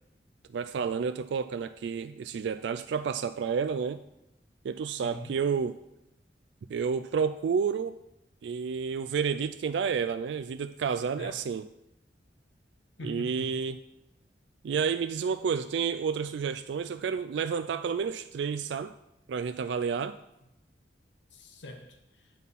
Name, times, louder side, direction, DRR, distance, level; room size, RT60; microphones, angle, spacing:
voice 1, 0.5-4.0 4.6-5.8 6.7-8.0 8.4-11.7 13.0-13.8 14.6-18.9 19.3-20.2, right 6 dB, 75° right, 11 dB, 0.3 m, -30 dB
voice 2, 4.9-5.3 11.2-11.3 13.0-13.6 19.6-19.7 21.3-22.3, left 1 dB, 85° left, 5 dB, 0.8 m, -43 dB
9.2 x 4.1 x 5.4 m, 0.86 s
head